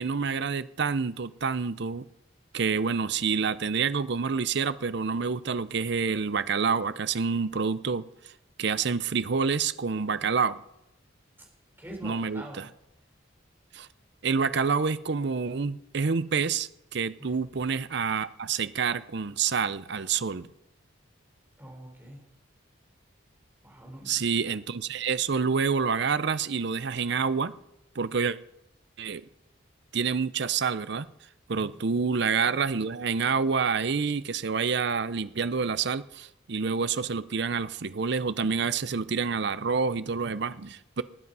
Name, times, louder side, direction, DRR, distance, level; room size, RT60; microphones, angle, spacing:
voice 1, 0.0-2.1 2.5-8.0 8.6-10.6 12.0-12.7 13.7-13.9 14.2-20.5 24.1-27.5 28.0-28.4 29.0-29.2 29.9-31.1 31.5-41.0, right 5 dB, 55° right, 15 dB, 0.6 m, -28 dB
voice 2, 11.8-12.6 17.2-17.4 21.6-22.2 23.6-24.2 31.5-31.7, right 1 dB, 10° right, 0 dB, 3.6 m, -44 dB
19.5 x 8.5 x 5.5 m, 0.86 s
head